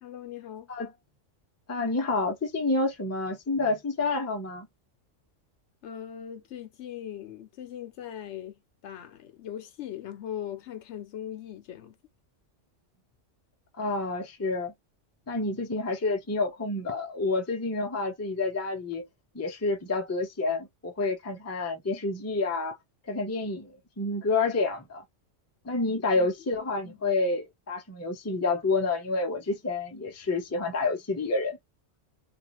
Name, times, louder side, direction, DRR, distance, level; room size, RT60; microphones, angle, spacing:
voice 1, 0.0-0.7 5.8-12.0 26.1-26.3 26.8-27.0, left 10 dB, 70° left, 0.9 m, -40 dB
voice 2, 1.7-4.7 13.8-14.7 15.3-19.1 19.3-22.8 23.1-25.0 25.6-31.6, left 3 dB, 20° left, 0.4 m, -29 dB
2.4 x 2.4 x 2.9 m
omnidirectional pair, 1.3 m